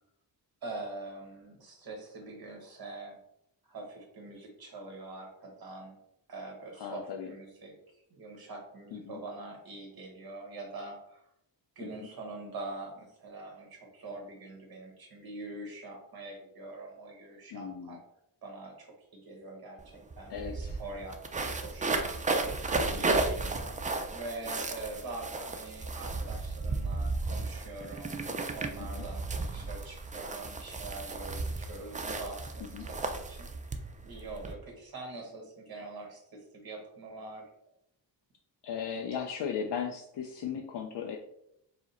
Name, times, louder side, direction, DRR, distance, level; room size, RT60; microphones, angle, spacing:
voice 1, 0.6-3.2 3.7-6.0 6.3-7.7 8.1-11.2 11.7-18.0 18.4-22.1 23.0-33.5 34.0-37.5, right 2 dB, 50° right, 0 dB, 1.5 m, -44 dB
voice 2, 6.8-7.3 8.9-9.2 11.8-12.1 17.5-18.0 20.3-20.8 22.7-23.0 28.8-29.0 32.7-32.9 38.6-41.2, left 7 dB, 65° left, 2 dB, 0.6 m, -37 dB
sound 1, 19.8-19.9 20.1-34.5, right 3 dB, 20° right, 0.3 m, -34 dB
4.8 x 2.1 x 4.1 m, 0.77 s
wide cardioid pair, 115°, 45 cm